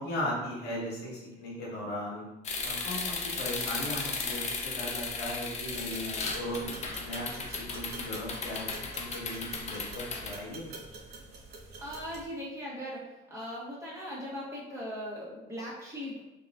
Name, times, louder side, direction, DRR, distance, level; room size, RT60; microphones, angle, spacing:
voice 1, 0.0-2.2 2.6-11.0, left 1 dB, 75° left, -4 dB, 1.1 m, -37 dB
sound 1, 2.4-10.3, left 4 dB, 40° left, 0.5 m, -36 dB
sound 2, 5.6-12.3, right 3 dB, 75° right, 0.9 m, -47 dB
voice 2, 11.8-16.2, equal, 15° right, -7 dB, 1.2 m, -39 dB
4.0 x 2.4 x 2.3 m, 1.0 s
cardioid pair, 110°, 17 cm